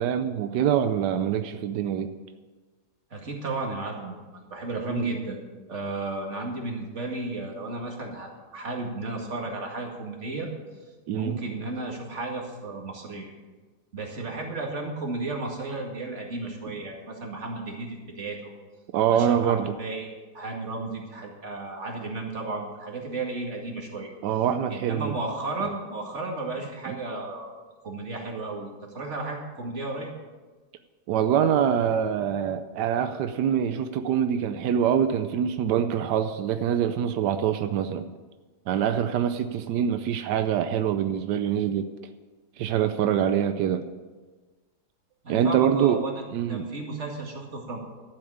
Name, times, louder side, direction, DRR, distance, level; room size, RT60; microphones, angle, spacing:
voice 1, 0.0-2.1 4.9-5.1 11.1-11.4 18.9-19.7 24.2-25.1 26.9-27.0 31.1-38.1 38.7-41.9 42.6-43.8 45.3-46.0 46.3-46.6, right 9 dB, 90° right, 9 dB, 1.3 m, -24 dB
voice 2, 3.1-5.4 5.7-10.5 11.1-13.3 13.9-18.5 19.1-24.1 24.7-27.5 27.8-28.7 28.9-30.1 45.2-46.1 46.5-47.8, right 2 dB, 45° right, 0 dB, 2.5 m, -33 dB
12.0 x 7.5 x 8.6 m, 1.3 s
omnidirectional pair, 1.8 m